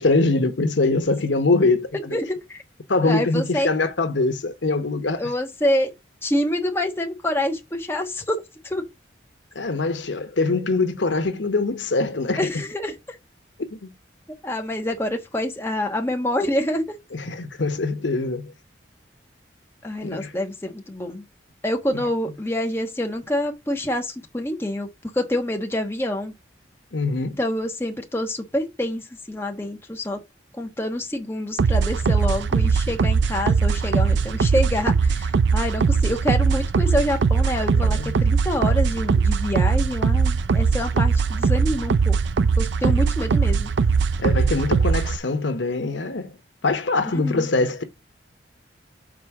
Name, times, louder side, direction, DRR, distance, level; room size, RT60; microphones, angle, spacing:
voice 1, 0.0-2.2 2.9-5.2 9.5-12.4 13.7-13.9 17.1-18.5 20.0-20.3 21.9-22.0 26.9-27.4 37.7-38.2 40.9-41.1 42.8-42.9 44.2-46.3 46.6-47.8, left 3 dB, 90° left, 1.0 m, -23 dB
voice 2, 2.1-2.6 3.0-3.7 5.2-5.9 6.2-8.8 12.4-12.9 14.4-17.0 19.8-21.2 21.6-24.9 25.1-26.3 27.4-29.0 29.3-30.2 30.6-42.2 42.6-43.7 47.0-47.5, left 1 dB, 15° left, 1.2 m, -26 dB
sound 1, 31.6-45.2, right 5 dB, 70° right, 0.4 m, -20 dB
5.0 x 4.3 x 5.9 m
head